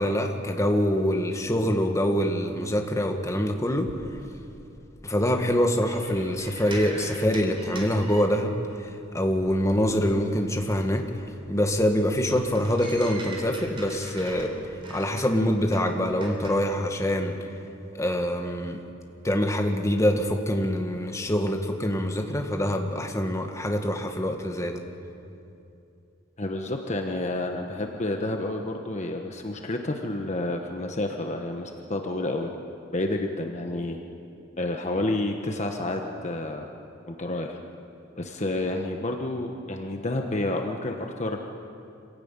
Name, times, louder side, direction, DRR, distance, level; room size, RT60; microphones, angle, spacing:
voice 1, 0.0-3.9 5.0-8.6 9.1-11.1 11.5-14.6 14.9-17.4 17.9-18.8 19.2-24.8, equal, 15° left, 3 dB, 1.7 m, -25 dB
sound 1, 3.8-8.8 9.1-16.5, right 1 dB, 25° right, 3.8 m, -44 dB
voice 2, 26.4-32.5 32.9-34.0 34.6-36.7 37.1-37.6 38.2-41.4, left 2 dB, 35° left, 3 dB, 1.3 m, -29 dB
26.5 x 16.5 x 8.9 m, 2.7 s
head